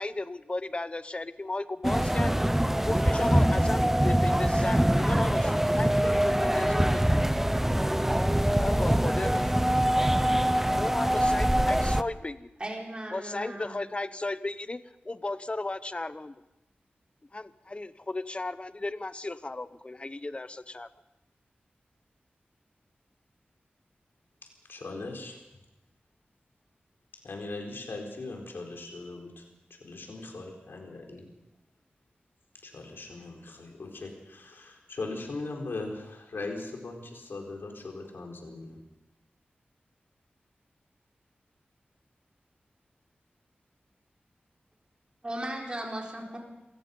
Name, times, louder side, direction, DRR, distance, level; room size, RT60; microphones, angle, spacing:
voice 1, 0.0-2.3 2.8-7.2 8.6-9.5 10.7-12.5 13.1-16.3 17.3-20.9, left 2 dB, 30° left, 13 dB, 0.9 m, -35 dB
sound 1, 1.8-12.0, right 1 dB, 10° right, 0.7 m, -24 dB
voice 2, 12.6-13.8 45.2-46.4, right 1 dB, 30° right, -1 dB, 4.3 m, -36 dB
voice 3, 24.7-25.4 27.2-29.4 29.7-31.3 32.6-38.8, left 3 dB, 85° left, 1 dB, 4.5 m, -39 dB
27.5 x 17.0 x 5.5 m, 0.97 s
wide cardioid pair, 90°, 4 cm